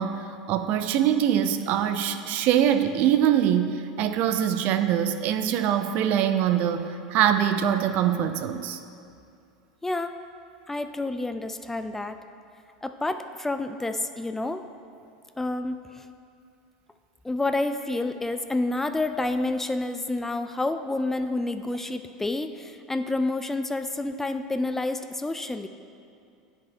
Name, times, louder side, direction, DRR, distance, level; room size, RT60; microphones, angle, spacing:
voice 1, 0.0-8.8, right 9 dB, 55° right, 10 dB, 0.4 m, -23 dB
voice 2, 9.8-10.1 10.7-12.2 12.8-14.7 15.4-16.1 17.2-25.7, left 2 dB, 10° left, 9 dB, 0.3 m, -29 dB
9.4 x 5.1 x 3.5 m, 2.4 s
hypercardioid pair, 90°, 3 cm